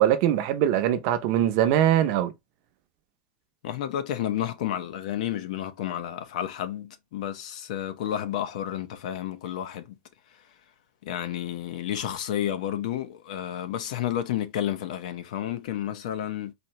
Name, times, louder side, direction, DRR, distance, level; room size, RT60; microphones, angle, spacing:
voice 1, 0.0-2.3, right 11 dB, 45° right, 0.6 m, -22 dB
voice 2, 3.6-10.0 11.0-16.5, left 11 dB, 70° left, 0.8 m, -31 dB
4.3 x 2.7 x 3.1 m
supercardioid pair, 175°, 4 cm